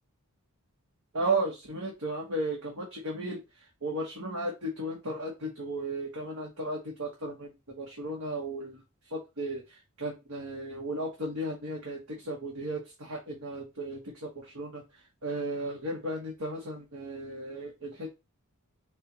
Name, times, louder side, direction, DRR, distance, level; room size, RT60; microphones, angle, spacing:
voice 1, 1.1-18.1, right 1 dB, 75° right, -2 dB, 1.3 m, -35 dB
4.4 x 2.5 x 4.1 m, 0.25 s
head